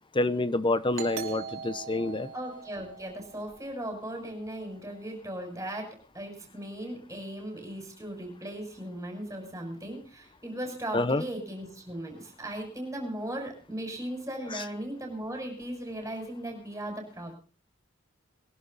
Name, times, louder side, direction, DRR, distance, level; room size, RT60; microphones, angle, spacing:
voice 1, 0.1-2.3 10.9-11.2, left 2 dB, 25° left, 15 dB, 0.9 m, -27 dB
Doorbell, 0.9-4.3, right 7 dB, 75° right, 3.2 m, -41 dB
voice 2, 2.3-17.4, right 1 dB, 15° right, 2 dB, 6.3 m, -37 dB
22.5 x 11.5 x 4.1 m, 0.34 s
head